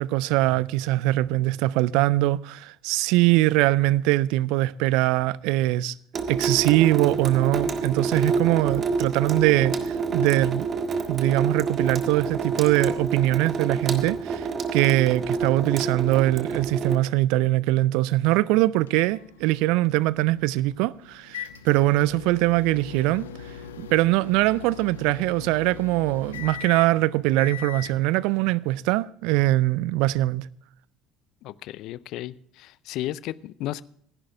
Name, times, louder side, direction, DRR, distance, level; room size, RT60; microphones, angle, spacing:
voice 1, 0.0-5.9 6.3-10.7 11.1-23.3 23.8-30.5, right 17 dB, 65° right, 0.4 m, -22 dB
Water tap faucet / Sink (filling or washing) / Drip, 6.1-17.0, right 4 dB, 40° right, 1.6 m, -28 dB
sound 1, 18.9-28.0, left 8 dB, 80° left, 1.0 m, -41 dB
voice 2, 31.4-33.8, left 14 dB, 60° left, 0.5 m, -34 dB
26.0 x 11.0 x 2.3 m
figure-of-eight pair, 60°, 0 cm